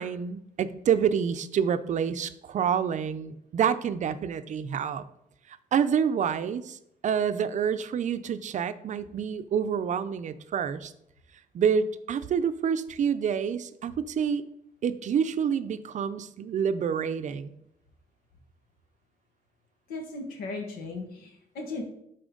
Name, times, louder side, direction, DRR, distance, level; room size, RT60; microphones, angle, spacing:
voice 1, 0.0-5.1 5.5-10.9 11.5-14.4 14.8-17.5, right 7 dB, 55° right, 12 dB, 0.5 m, -28 dB
voice 2, 19.9-21.8, left 3 dB, 90° left, 2 dB, 1.6 m, -37 dB
11.5 x 4.3 x 3.8 m, 0.80 s
cardioid pair, 90°, 15 cm